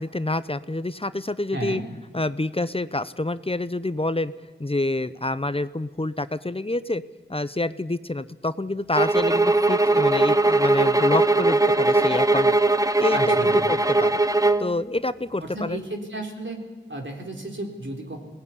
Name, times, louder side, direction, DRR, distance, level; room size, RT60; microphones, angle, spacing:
voice 1, 0.0-1.8 2.1-4.3 4.6-7.0 7.3-12.5 13.0-14.2 14.6-15.8, left 2 dB, 30° left, 14 dB, 0.8 m, -27 dB
voice 2, 1.5-1.9 13.1-13.6 15.4-16.6 16.9-18.2, right 2 dB, 80° right, 1 dB, 3.9 m, -33 dB
sound 1, 8.9-14.7, right 2 dB, 15° right, 0.8 m, -20 dB
21.5 x 18.0 x 9.8 m, 1.3 s
wide cardioid pair, 45°, 19 cm